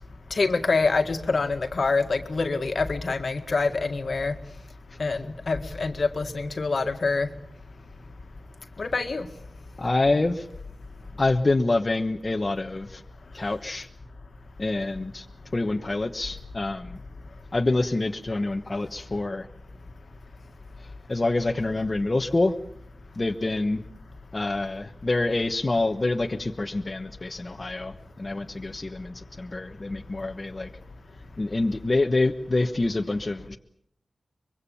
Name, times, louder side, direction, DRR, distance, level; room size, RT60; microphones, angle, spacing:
voice 1, 0.3-4.4 5.0-7.3 8.8-9.3, left 3 dB, 65° left, 7 dB, 1.9 m, -26 dB
voice 2, 9.8-10.5 11.2-13.0 13.3-13.9 14.6-15.2 15.5-17.0 17.5-19.5 21.1-22.5 23.2-23.8 24.3-30.7 31.4-33.6, left 2 dB, 40° left, 4 dB, 1.3 m, -26 dB
24.5 x 23.0 x 7.2 m, 0.71 s
wide cardioid pair, 65°, 0 cm